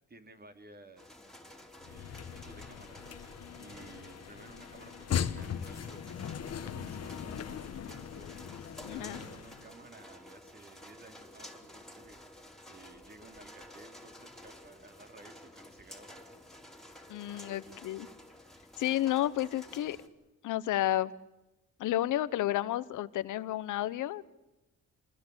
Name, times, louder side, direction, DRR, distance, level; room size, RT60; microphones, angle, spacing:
voice 1, 0.1-1.2 1.8-3.2 3.6-16.4 17.3-17.7, right 2 dB, 30° right, 6 dB, 3.8 m, -55 dB
sound 1, 1.0-20.1, left 1 dB, ahead, 4.0 m, -52 dB
sound 2, 1.8-9.7, left 8 dB, 55° left, 1.5 m, -39 dB
voice 2, 8.8-9.2 17.1-18.1 18.8-20.0 20.4-21.1 21.8-24.2, left 13 dB, 80° left, 16 dB, 1.2 m, -31 dB
27.5 x 21.5 x 8.2 m, 0.96 s
cardioid pair, 90°, 30 cm